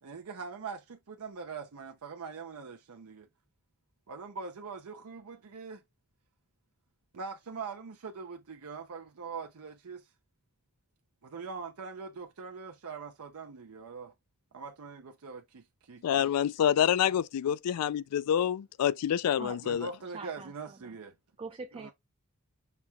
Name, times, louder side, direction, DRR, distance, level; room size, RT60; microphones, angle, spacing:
voice 1, 0.0-3.3 4.1-5.8 7.1-10.1 11.2-14.1 14.5-16.3 19.6-21.1 21.7-21.9, right 5 dB, 75° right, 0.6 m, -42 dB
voice 2, 16.0-19.9, left 9 dB, 90° left, 0.3 m, -27 dB
voice 3, 20.1-21.0 21.4-21.9, right 4 dB, 25° right, 0.4 m, -43 dB
5.9 x 2.3 x 3.6 m
head